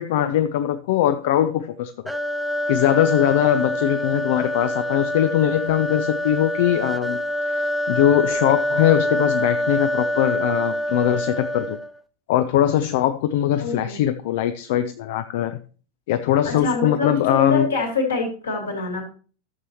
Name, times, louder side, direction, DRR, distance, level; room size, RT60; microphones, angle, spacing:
voice 1, 0.0-1.9 2.7-7.2 7.6-11.8 12.3-15.6 16.1-17.7, left 11 dB, 50° left, 0.5 m, -21 dB
sound 1, 2.1-12.0, equal, ahead, 0.6 m, -25 dB
voice 2, 13.6-14.0 16.4-19.0, left 3 dB, 70° left, 3.0 m, -25 dB
13.5 x 6.8 x 3.0 m
figure-of-eight pair, 90°, 0 cm